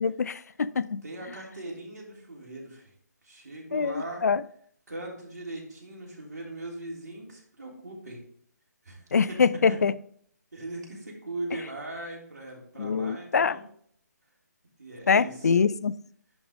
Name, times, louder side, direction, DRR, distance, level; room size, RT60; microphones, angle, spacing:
voice 1, 0.0-1.0 3.7-4.4 9.1-9.9 12.8-13.6 15.1-15.9, left 5 dB, 65° left, 20 dB, 0.4 m, -24 dB
voice 2, 1.0-2.9 3.2-4.3 4.9-8.2 8.8-9.8 10.5-13.6 14.8-15.5, right 2 dB, 75° right, -2 dB, 3.3 m, -39 dB
10.5 x 4.8 x 3.6 m, 0.62 s
figure-of-eight pair, 150°, 9 cm